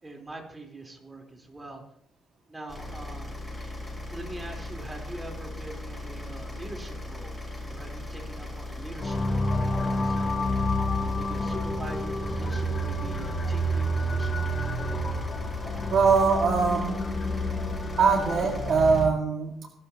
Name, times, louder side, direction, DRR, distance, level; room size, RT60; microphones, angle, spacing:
voice 1, 0.0-1.8 2.5-3.3 3.9-7.3 7.7-9.6 9.9-10.5 11.0-14.5, right 2 dB, 20° right, 2 dB, 3.9 m, -43 dB
sound 1, 2.7-19.1, left 2 dB, 10° left, 5.8 m, -38 dB
sound 2, 9.0-19.1, left 1 dB, 30° left, 3.7 m, -29 dB
voice 2, 15.9-17.1 18.0-19.7, right 5 dB, 60° right, 2 dB, 2.0 m, -22 dB
20.0 x 12.0 x 3.0 m, 0.66 s
cardioid pair, 90°, 0 cm